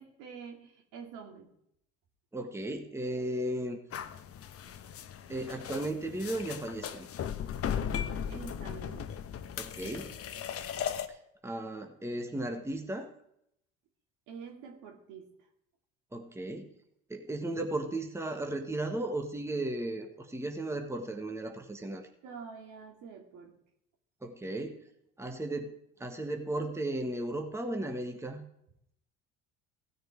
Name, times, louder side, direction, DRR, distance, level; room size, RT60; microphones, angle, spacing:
voice 1, 0.0-1.5 8.3-9.1 14.3-15.3 22.2-23.6, right 6 dB, 65° right, 3 dB, 2.4 m, -47 dB
voice 2, 2.3-3.8 5.3-7.1 9.6-10.1 11.1-11.2 11.4-13.1 16.1-16.7 17.1-22.0 24.2-24.8 25.2-25.7 26.0-28.4, right 1 dB, 10° right, 4 dB, 1.4 m, -35 dB
sound 1, 3.9-11.1, left 8 dB, 45° left, 1.0 m, -37 dB
15.5 x 6.7 x 4.6 m, 0.74 s
hypercardioid pair, 70°, 33 cm